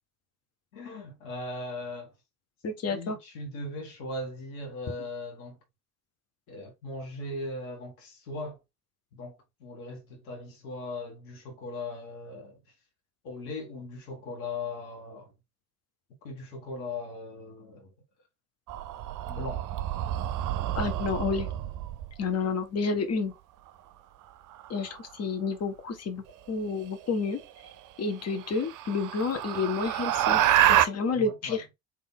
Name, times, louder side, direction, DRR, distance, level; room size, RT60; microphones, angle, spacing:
voice 1, 0.7-2.1 2.9-5.6 6.5-8.6 9.1-12.6 13.2-15.3 16.2-17.9 19.3-19.7 31.1-31.6, left 2 dB, 80° left, 1.4 m, -39 dB
voice 2, 2.6-3.2 20.7-21.5 22.2-23.3 24.7-27.4 28.0-30.4 30.7-31.6, left 4 dB, 40° left, 1.1 m, -30 dB
sound 1, 18.7-22.2 24.5-25.0 27.0-27.1 27.6-27.7 28.2-30.9, right 12 dB, 50° right, 0.6 m, -27 dB
3.6 x 2.8 x 3.6 m
hypercardioid pair, 55°, 41 cm